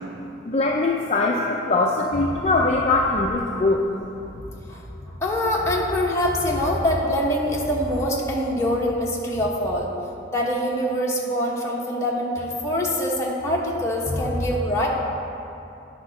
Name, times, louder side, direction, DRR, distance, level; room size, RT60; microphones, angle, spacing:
voice 1, 0.5-4.1, left 2 dB, 35° left, -1 dB, 0.4 m, -22 dB
voice 2, 4.7-9.9 10.3-14.9, equal, 15° left, -4 dB, 1.1 m, -24 dB
10.0 x 4.3 x 6.4 m, 2.7 s
head